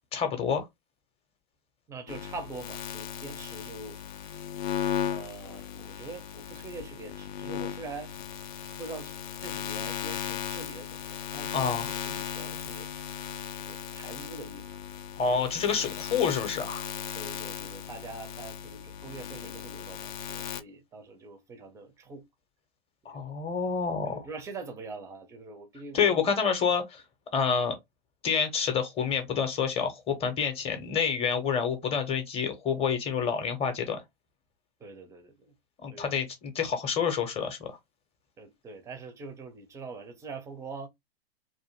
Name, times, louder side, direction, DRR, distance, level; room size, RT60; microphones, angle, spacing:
voice 1, 0.1-0.7 11.5-11.8 15.2-16.9 23.1-24.2 25.9-27.0 27.3-27.8 28.2-34.0 35.8-37.8, left 6 dB, 20° left, 0.7 m, -28 dB
voice 2, 1.9-4.0 5.1-8.1 8.8-12.9 13.5-14.7 15.2-15.4 17.1-22.2 23.0-23.3 24.1-26.3 34.8-35.5 35.9-36.1 38.4-40.9, right 3 dB, 10° right, 0.4 m, -44 dB
sound 1, 2.1-20.6, left 9 dB, 50° left, 0.4 m, -37 dB
2.5 x 2.2 x 2.9 m
hypercardioid pair, 120°, 31 cm